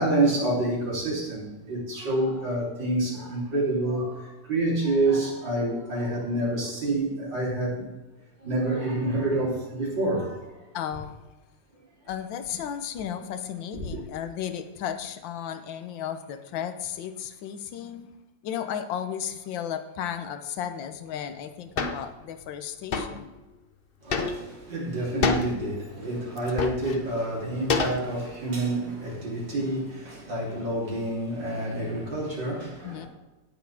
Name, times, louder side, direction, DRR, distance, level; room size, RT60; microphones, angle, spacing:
voice 1, 0.0-7.9 8.4-10.7 13.8-14.0 24.0-33.1, right 2 dB, 75° right, 4.3 m, -28 dB
voice 2, 10.7-11.1 12.1-18.1 18.4-23.3 32.8-33.1, left 9 dB, 85° left, 1.6 m, -34 dB
sound 1, 21.8-22.0 22.9-23.2 24.1-24.6 25.2-25.5 26.4-27.0 27.7-28.3, left 4 dB, 50° left, 0.6 m, -27 dB
17.5 x 7.1 x 3.5 m
omnidirectional pair, 2.0 m